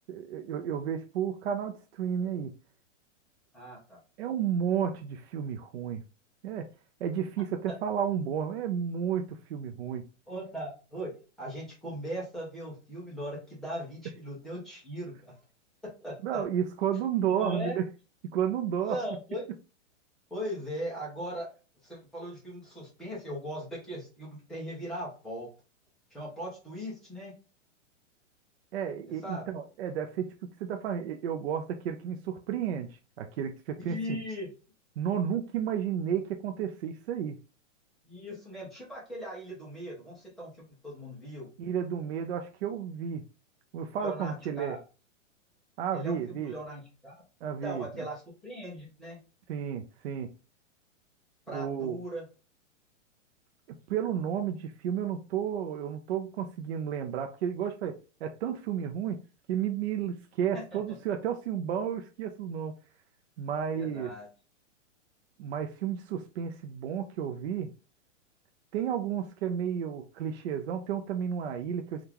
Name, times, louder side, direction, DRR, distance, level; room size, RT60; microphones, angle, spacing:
voice 1, 0.1-2.5 4.2-6.0 6.4-6.7 7.0-10.0 16.2-17.8 18.3-19.0 28.7-30.3 30.6-32.9 33.2-34.2 35.0-37.4 41.6-43.2 43.7-44.8 45.8-46.5 47.4-48.1 49.5-50.3 51.5-52.0 53.9-59.2 59.5-62.7 63.4-64.1 65.4-67.7 68.7-72.0, right 8 dB, 55° right, 0.5 m, -32 dB
voice 2, 3.5-4.0 10.3-11.1 11.4-15.3 16.0-16.4 17.4-17.8 18.8-19.4 20.3-21.5 21.8-25.5 26.1-27.3 29.2-29.4 33.8-34.5 38.0-40.5 40.8-41.5 44.0-44.8 45.9-47.2 47.6-49.2 51.5-52.2 60.7-60.8 63.7-64.3, equal, ahead, 0.3 m, -39 dB
3.7 x 2.3 x 2.8 m
hypercardioid pair, 150°, 38 cm